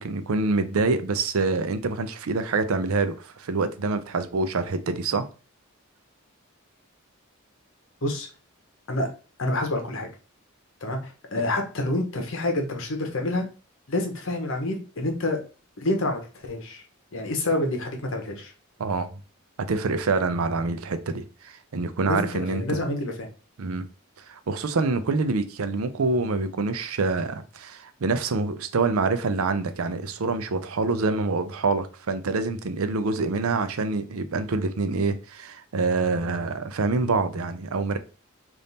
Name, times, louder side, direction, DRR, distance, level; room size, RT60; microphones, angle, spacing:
voice 1, 0.0-5.3 18.8-19.1 19.6-22.6 23.6-23.9 24.3-38.0, right 3 dB, 80° right, 0.5 m, -26 dB
voice 2, 9.4-10.1 10.8-13.5 13.9-15.4 15.8-16.8 17.1-18.5 22.1-23.3, left 2 dB, 65° left, 1.0 m, -28 dB
3.5 x 2.6 x 4.0 m
head